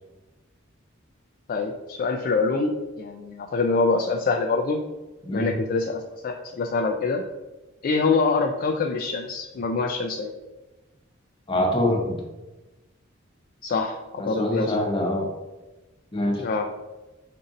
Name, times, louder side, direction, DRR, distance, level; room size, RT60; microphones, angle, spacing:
voice 1, 1.5-4.8 5.3-7.2 7.8-10.3 13.6-14.8 16.4-16.7, left 4 dB, 45° left, 2 dB, 0.3 m, -25 dB
voice 2, 5.3-5.6 11.5-12.2 14.2-15.3 16.1-16.4, left 1 dB, 25° left, -1 dB, 0.9 m, -24 dB
5.3 x 2.5 x 3.9 m, 1.1 s
head